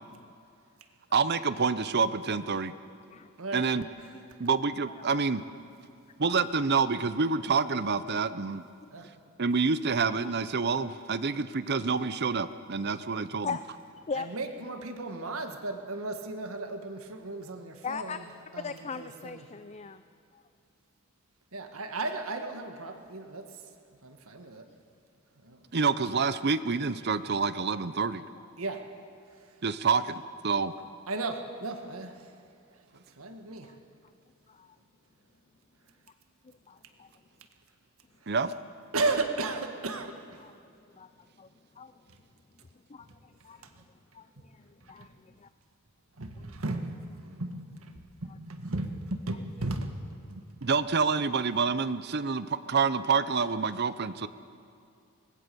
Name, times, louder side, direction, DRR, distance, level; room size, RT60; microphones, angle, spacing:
voice 1, 1.1-2.7 3.5-3.9 4.4-5.4 6.2-8.6 9.4-13.5 25.7-28.2 29.6-30.7 38.3-38.5 50.6-54.3, right 5 dB, 50° right, 14 dB, 0.8 m, -27 dB
voice 2, 5.0-5.3 8.0-8.2 8.8-8.9 10.2-10.3 13.4-13.6 14.0-14.3 17.8-18.2 18.6-20.0 20.3-20.4 24.7-24.8 33.5-33.8 34.5-34.8 36.4-37.2 40.4-42.1 42.6-45.5 46.4-46.5, left 5 dB, 30° left, 11 dB, 0.5 m, -41 dB
voice 3, 14.2-18.2 18.5-19.5 21.5-23.5 24.0-24.6 25.4-25.6 28.6-28.9 31.1-32.3 32.9-33.7 38.2-38.3 38.9-40.4 43.8-43.9 44.8-45.1 46.2-50.4, right 2 dB, 75° right, 6 dB, 1.8 m, -35 dB
25.0 x 20.0 x 7.0 m, 2.6 s
head